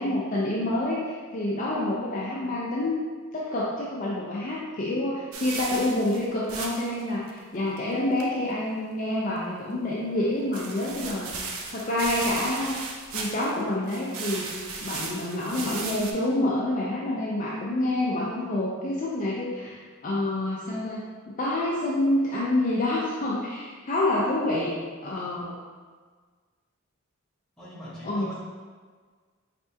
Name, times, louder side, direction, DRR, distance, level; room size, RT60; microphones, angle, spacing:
voice 1, 0.0-3.0 3.3-12.8 13.1-14.5 14.8-24.7 25.0-25.6 28.0-28.3, left 1 dB, 35° left, -5 dB, 0.5 m, -28 dB
sound 1, 5.3-7.0 7.3-7.4 7.8-7.9 8.2-8.3 10.5-13.6 13.9-16.1, right 4 dB, 75° right, 0.5 m, -36 dB
voice 2, 27.6-28.3, equal, ahead, -10 dB, 1.1 m, -42 dB
4.6 x 3.3 x 2.7 m, 1.5 s
head